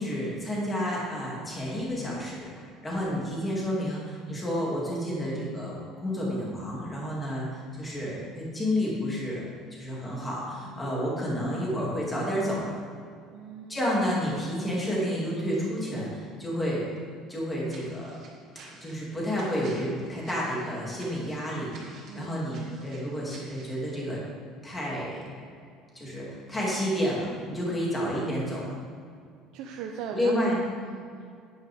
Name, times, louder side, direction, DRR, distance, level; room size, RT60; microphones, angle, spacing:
voice 1, 0.0-9.4 9.8-12.6 13.7-16.9 17.3-18.2 18.8-21.7 22.2-24.2 24.6-25.5 25.9-28.7 30.1-30.6, equal, 10° left, -5 dB, 2.5 m, -30 dB
voice 2, 10.7-11.0 13.3-13.9 16.5-16.9 22.1-22.5 27.7-28.0 29.5-30.6 30.8-31.3, right 7 dB, 65° right, 1 dB, 0.7 m, -40 dB
sound 1, 17.7-23.8, right 3 dB, 40° right, 2.2 m, -51 dB
9.9 x 9.5 x 3.6 m, 2.3 s
cardioid pair, 165°, 0 cm